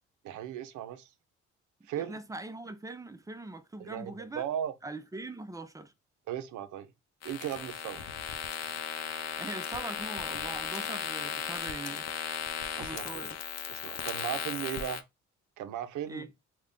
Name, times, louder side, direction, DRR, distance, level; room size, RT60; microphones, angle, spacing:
voice 1, 0.2-1.1 1.9-2.2 3.8-4.7 6.3-6.9 7.2-8.1 12.8-13.2 13.7-15.0 15.6-16.2, right 10 dB, 75° right, 0.6 m, -37 dB
voice 2, 1.9-4.5 4.8-5.9 9.4-12.1 12.8-13.4 16.1-16.3, right 2 dB, 10° right, 0.4 m, -42 dB
sound 1, 7.2-15.0, left 8 dB, 60° left, 0.6 m, -36 dB
3.6 x 2.2 x 3.6 m
cardioid pair, 90°, 30 cm